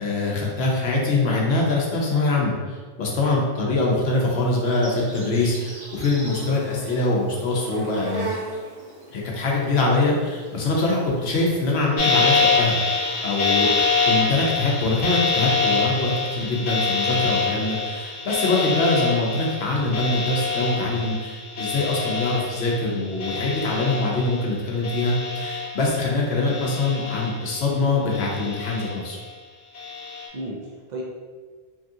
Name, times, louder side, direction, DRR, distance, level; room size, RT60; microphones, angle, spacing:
voice 1, 0.0-8.3 9.1-13.7 14.0-29.2, left 2 dB, 85° left, -2 dB, 0.9 m, -23 dB
Insect, 4.1-11.7, right 2 dB, 85° right, 1.2 m, -38 dB
sound 1, 12.0-24.5 24.8-26.1 26.5-27.7 28.1-29.2 29.7-30.3, left 4 dB, 50° left, 0.7 m, -25 dB
voice 2, 30.3-31.0, right 1 dB, 55° right, -4 dB, 0.5 m, -35 dB
2.9 x 2.6 x 2.4 m, 1.5 s
omnidirectional pair, 1.1 m